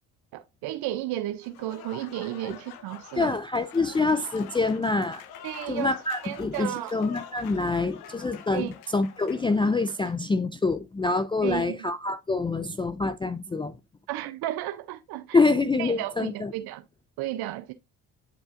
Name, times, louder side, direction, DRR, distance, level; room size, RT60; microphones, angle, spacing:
voice 1, 0.3-3.3 5.4-5.9 6.2-7.0 8.5-8.7 11.4-11.8 14.1-15.4 15.8-16.8 17.2-17.7, right 14 dB, 75° right, 0.6 m, -33 dB
Applause / Crowd, 1.4-10.3, left 9 dB, 80° left, 0.9 m, -46 dB
voice 2, 3.2-5.2 5.7-13.8 15.3-16.5, left 3 dB, 15° left, 0.4 m, -26 dB
8.4 x 5.4 x 2.4 m
supercardioid pair, 65°, 38 cm